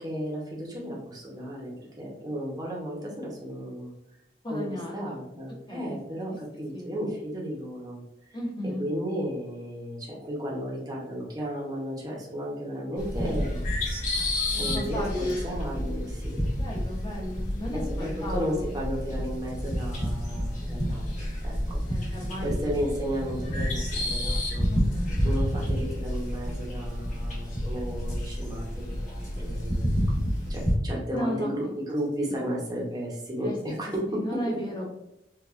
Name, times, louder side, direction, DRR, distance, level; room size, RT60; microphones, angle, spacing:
voice 1, 0.0-3.9 4.5-4.6 4.9-8.0 8.8-13.6 13.9-14.2 14.5-16.5 17.7-24.7 25.2-29.9 30.5-34.4, equal, 20° right, -3 dB, 0.8 m, -34 dB
voice 2, 4.4-5.2 5.7-6.0 6.7-7.0 8.3-8.8 14.5-15.4 16.6-18.7 21.9-22.7 24.7-25.1 31.1-31.7 32.3-32.4 33.4-33.6 34.1-34.9, left 1 dB, 25° left, -2 dB, 0.9 m, -35 dB
sound 1, 13.0-30.7, equal, 45° left, 1.1 m, -29 dB
4.7 x 2.3 x 2.5 m, 0.84 s
head